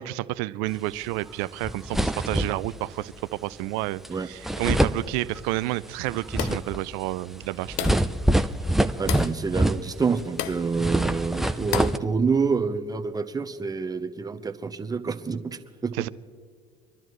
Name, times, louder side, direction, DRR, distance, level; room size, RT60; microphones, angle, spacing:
voice 1, 0.0-7.9 15.9-16.1, right 18 dB, 75° right, 17 dB, 0.5 m, -30 dB
sound 1, 1.3-1.4 1.6-2.8 4.0-4.1 4.4-5.7 6.1-10.2 10.5-12.0, right 1 dB, ahead, 0.6 m, -25 dB
sound 2, 6.4-6.7 7.8-8.1 9.1-9.4 10.4-10.7 11.7-12.0, left 13 dB, 70° left, 0.6 m, -32 dB
voice 2, 9.0-15.9, right 5 dB, 20° right, 7 dB, 0.9 m, -27 dB
26.0 x 12.0 x 3.2 m, 2.1 s
hypercardioid pair, 75°, 19 cm